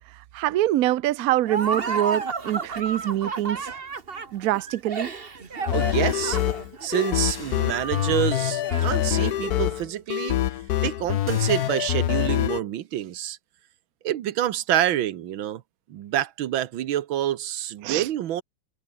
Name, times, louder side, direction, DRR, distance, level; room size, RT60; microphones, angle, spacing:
voice 1, 0.3-3.8 4.3-5.1 17.8-18.1, right 14 dB, 65° right, 0.9 m, -25 dB
Laughter, 1.5-9.7, right 4 dB, 30° right, 1.6 m, -32 dB
sound 1, 5.7-12.6, left 13 dB, 65° left, 1.0 m, -25 dB
voice 2, 5.7-6.4 6.8-10.4 10.8-13.4 14.0-15.6 15.9-18.4, right 12 dB, 85° right, 1.8 m, -27 dB
sound 2, 7.3-8.5 9.0-9.1 11.3-11.9, left 1 dB, 10° left, 2.2 m, -45 dB
omnidirectional pair, 2.1 m